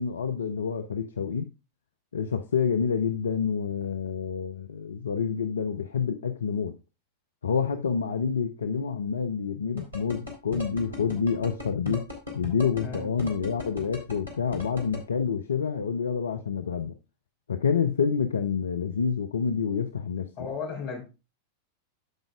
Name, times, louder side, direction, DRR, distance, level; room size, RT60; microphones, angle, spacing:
voice 1, 0.0-1.5 2.1-6.8 7.4-12.0 12.3-16.9 17.5-20.5, left 6 dB, 70° left, 0.5 m, -28 dB
sound 1, 9.8-15.0, left 3 dB, 85° left, 2.9 m, -36 dB
voice 2, 20.4-21.0, left 5 dB, 45° left, 3.5 m, -34 dB
14.5 x 5.1 x 2.4 m
figure-of-eight pair, 90°, 0 cm